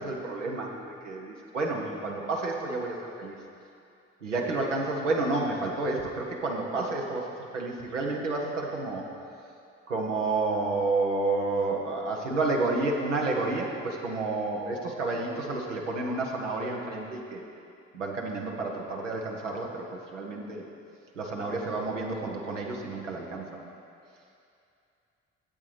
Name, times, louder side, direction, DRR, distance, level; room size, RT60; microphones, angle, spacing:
voice 1, 0.0-3.4 4.2-9.0 9.9-17.4 17.9-20.6 21.2-23.7, right 3 dB, 90° right, 0 dB, 0.8 m, -30 dB
13.5 x 7.8 x 3.2 m, 2.5 s
figure-of-eight pair, 40°, 36 cm